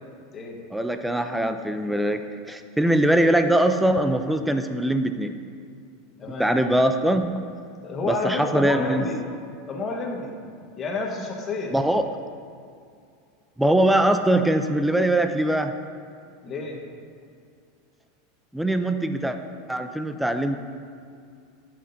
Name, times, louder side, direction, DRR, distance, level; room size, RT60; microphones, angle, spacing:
voice 1, 0.7-5.3 6.4-7.3 8.0-9.0 11.7-12.0 13.6-15.7 18.5-19.4 19.7-20.6, right 1 dB, 5° right, 8 dB, 0.6 m, -22 dB
voice 2, 6.2-6.6 7.8-9.2 9.7-10.3 10.8-11.7 16.4-16.8, left 3 dB, 30° left, 0 dB, 1.5 m, -30 dB
11.5 x 6.3 x 2.8 m, 2.3 s
hypercardioid pair, 105°, 0 cm